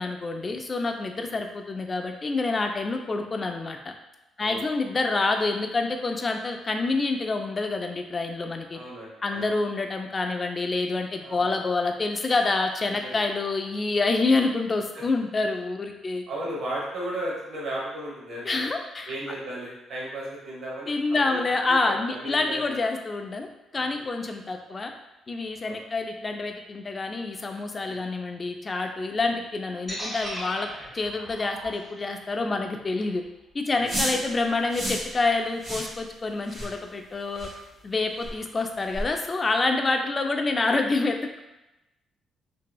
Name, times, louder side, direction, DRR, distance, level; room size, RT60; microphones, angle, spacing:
voice 1, 0.0-3.9 4.4-8.8 9.2-16.2 18.5-19.1 20.9-23.5 23.7-24.9 25.3-30.7 30.9-33.2 33.5-37.5 37.8-41.4, left 3 dB, 30° left, 4 dB, 0.3 m, -27 dB
voice 2, 8.7-9.5 11.2-11.6 12.9-13.2 14.9-15.0 16.3-18.7 19.1-21.4 21.7-22.8 23.7-24.0 25.6-25.8 27.8-28.0 33.7-34.0 34.2-34.3, right 1 dB, 60° right, -5 dB, 1.0 m, -36 dB
sound 1, 29.9-33.9, equal, ahead, 1.2 m, -39 dB
sound 2, 33.9-34.2 34.7-35.1 35.6-35.9 36.4-36.7 37.3-37.5 38.2-38.3 38.9-39.1, equal, 40° right, 1.5 m, -31 dB
2.9 x 2.7 x 2.2 m, 0.97 s
cardioid pair, 90°, 0 cm